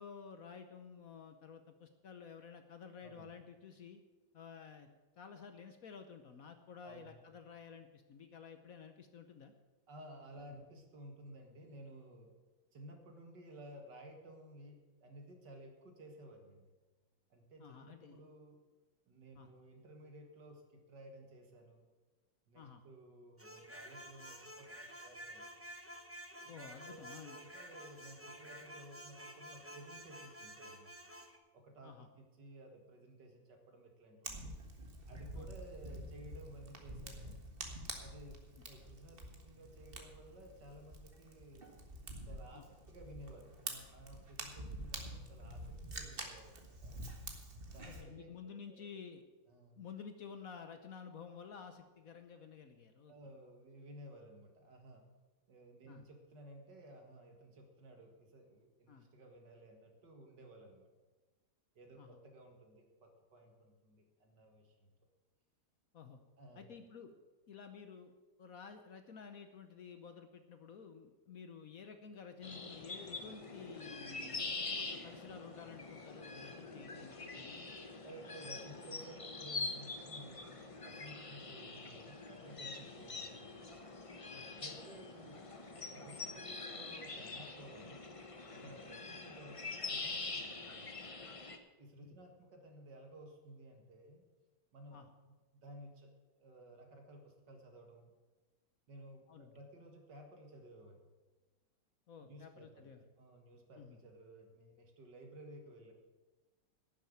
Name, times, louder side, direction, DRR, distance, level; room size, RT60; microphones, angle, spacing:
voice 1, 0.0-4.0 4.3-4.9 5.2-9.5 10.4-10.6 17.6-18.2 19.3-19.5 22.5-22.8 26.5-27.4 31.8-32.1 35.3-35.6 42.5-42.6 47.8-49.2 49.8-53.1 55.9-56.1 58.9-59.1 62.0-62.2 65.9-66.2 66.5-67.1 67.5-68.1 68.4-77.7 84.3-84.5 88.6-88.7 92.0-92.1 94.9-95.1 99.3-99.5 102.1-103.0 103.8-104.0, left 6 dB, 55° left, 8 dB, 1.1 m, -52 dB
voice 2, 6.8-7.2 9.9-12.3 12.7-16.6 17.3-18.6 19.1-21.8 22.5-25.5 26.3-26.5 26.8-30.9 31.5-34.4 35.1-37.4 38.0-38.4 38.7-41.7 42.3-47.0 47.7-48.3 48.7-48.9 49.5-49.8 53.1-55.0 55.5-60.9 61.8-64.9 66.4-66.8 78.0-80.6 80.8-83.6 84.6-88.0 88.5-91.0 91.8-94.2 94.7-95.0 95.3-95.4 95.6-96.1 96.4-98.1 98.9-101.0 102.2-102.9 103.2-105.9, right 1 dB, 65° right, 3 dB, 2.5 m, -55 dB
sound 1, 23.4-31.4, equal, 10° right, 0.7 m, -51 dB
Fire, 34.2-48.0, right 2 dB, 30° right, 1.6 m, -48 dB
sound 2, 72.4-91.6, left 3 dB, 30° left, 0.6 m, -45 dB
11.5 x 7.3 x 9.3 m, 1.2 s
omnidirectional pair, 2.0 m